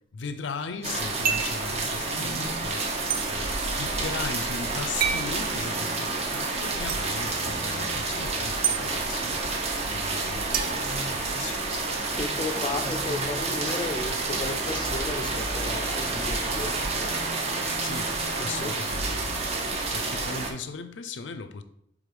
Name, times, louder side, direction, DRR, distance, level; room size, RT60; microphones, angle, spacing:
voice 1, 0.1-2.9 3.3-9.6 9.9-11.9 12.3-12.5 17.8-19.6 19.9-21.6, left 5 dB, 80° left, 0.5 m, -38 dB
sound 1, 0.8-20.5, right 3 dB, 35° right, 0.9 m, -29 dB
sound 2, 1.2-1.6 3.1-3.2 5.0-5.3 6.9-7.0 8.6-8.8 10.5-11.6, right 8 dB, 50° right, 0.5 m, -28 dB
voice 2, 12.2-16.7 18.6-18.7, left 2 dB, 25° left, 0.4 m, -33 dB
4.8 x 3.6 x 5.3 m
head